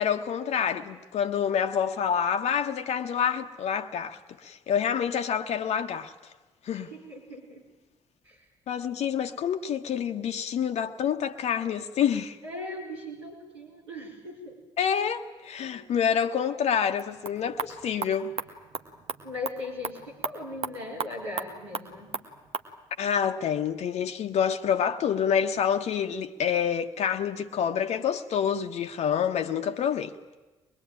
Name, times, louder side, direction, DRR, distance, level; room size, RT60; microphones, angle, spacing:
voice 1, 0.0-6.1 6.6-6.9 8.7-12.4 14.8-18.3 23.0-30.2, left 8 dB, 50° left, 1.2 m, -27 dB
voice 2, 6.7-7.6 8.2-8.4 12.4-14.6 15.6-15.7 19.2-22.1, left 2 dB, 80° right, 4.4 m, -39 dB
sound 1, 16.9-22.7, right 5 dB, 45° right, 1.8 m, -37 dB
23.5 x 21.5 x 9.1 m
figure-of-eight pair, 45°, 14 cm